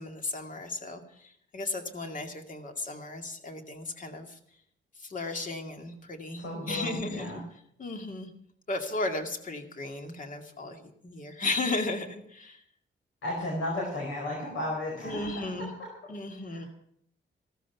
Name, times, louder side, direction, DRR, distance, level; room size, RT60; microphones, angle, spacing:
voice 1, 0.0-4.4 5.0-7.4 7.8-8.3 8.7-12.6 15.0-15.7 16.1-16.7, left 2 dB, 40° left, 5 dB, 2.2 m, -35 dB
voice 2, 6.4-7.4 13.2-15.9 16.5-16.7, left 1 dB, 75° left, -1 dB, 5.0 m, -34 dB
15.5 x 13.0 x 5.9 m, 0.69 s
cardioid pair, 120°, 20 cm